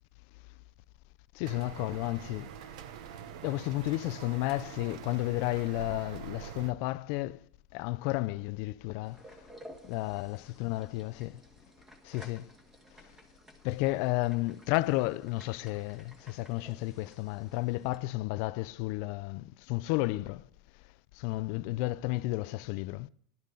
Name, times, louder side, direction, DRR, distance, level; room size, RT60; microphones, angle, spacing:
voice 1, 1.3-2.5 3.4-7.4 7.7-9.5 9.8-11.4 12.0-12.5 13.6-20.5 21.1-23.1, left 19 dB, 50° left, 0.4 m, -32 dB
sound 1, 1.4-6.7, right 9 dB, 65° right, 1.0 m, -45 dB
sound 2, 9.0-18.0, equal, 10° right, 1.6 m, -55 dB
17.5 x 12.0 x 3.9 m
supercardioid pair, 165°, 4 cm